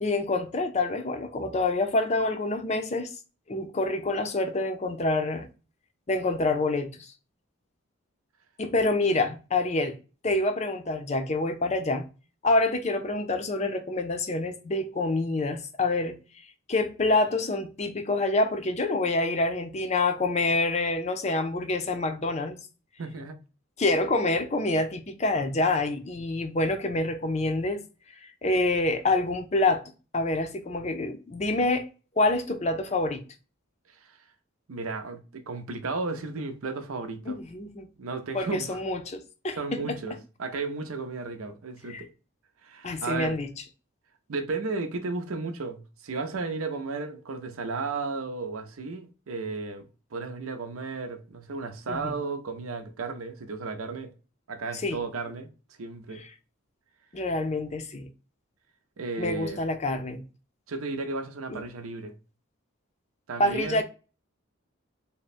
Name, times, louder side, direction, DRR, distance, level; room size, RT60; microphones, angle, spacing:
voice 1, 0.0-3.1 3.5-5.5 6.1-7.1 8.6-10.0 10.2-12.1 12.4-16.2 16.7-22.6 23.8-27.8 28.2-29.8 30.1-31.9 32.2-33.2 37.3-37.9 38.3-39.8 41.9-42.0 42.8-43.5 51.9-52.1 54.8-55.0 57.1-58.1 59.2-60.2 61.5-61.6 63.4-63.8, left 2 dB, 30° left, 0.5 m, -27 dB
voice 2, 23.0-23.4 34.0-34.1 34.7-37.4 38.0-38.8 39.6-42.1 42.6-43.4 44.3-54.1 54.5-55.5 55.8-56.2 59.0-59.6 60.7-62.1 63.3-63.8, right 3 dB, 90° right, 0.6 m, -34 dB
3.6 x 2.1 x 4.1 m
head